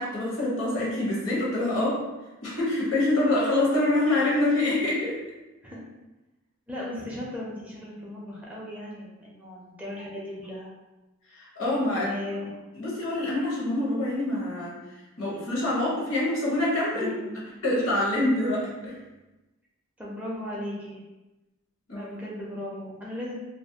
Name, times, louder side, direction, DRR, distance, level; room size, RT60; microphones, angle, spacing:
voice 1, 0.0-2.0 2.4-5.2 11.3-12.1 12.7-14.8 15.2-17.1 17.6-19.0 21.9-22.1, left 1 dB, 75° left, -5 dB, 0.9 m, -25 dB
voice 2, 6.7-10.7 11.9-12.6 16.9-17.4 20.0-21.0 21.9-23.3, left 1 dB, 5° right, -5 dB, 0.4 m, -36 dB
2.4 x 2.1 x 2.7 m, 1.1 s
head